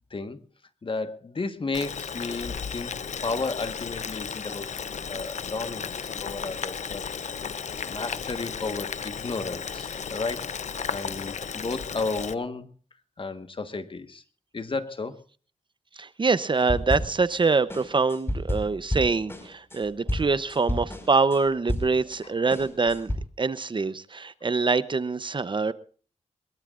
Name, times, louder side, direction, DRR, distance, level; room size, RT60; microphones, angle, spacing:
voice 1, 0.1-0.4 0.8-2.9 3.2-4.7 5.1-7.0 7.8-12.7 13.2-14.2 14.5-15.2, left 3 dB, 45° left, 1.5 m, -33 dB
Boiling, 1.7-12.3, left 6 dB, 75° left, 0.8 m, -34 dB
voice 2, 16.0-25.7, right 4 dB, 40° right, 0.8 m, -25 dB
sound 1, 16.7-17.4 17.7-22.2 22.5-23.2, equal, 20° left, 5.2 m, -30 dB
22.5 x 21.5 x 2.5 m
wide cardioid pair, 85°, 12 cm